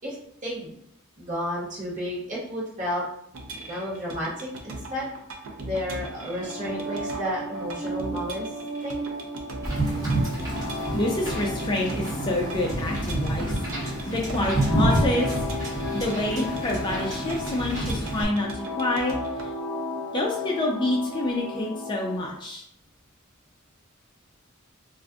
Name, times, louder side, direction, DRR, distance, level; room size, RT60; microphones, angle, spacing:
voice 1, 0.4-0.8 1.2-3.0 3.6-5.1 5.6-8.5 8.8-9.0, equal, 40° right, -6 dB, 1.2 m, -32 dB
sound 1, 3.3-19.5, right 2 dB, 80° right, 0.5 m, -39 dB
sound 2, 6.3-22.2, left 1 dB, 60° right, 1.1 m, -35 dB
Wind / Boat Water vehicle, 9.6-18.2, right 1 dB, 15° right, 0.9 m, -28 dB
voice 2, 10.9-15.3 16.0-19.2 20.1-22.6, left 1 dB, 20° left, -1 dB, 0.4 m, -27 dB
2.4 x 2.3 x 3.5 m, 0.73 s
head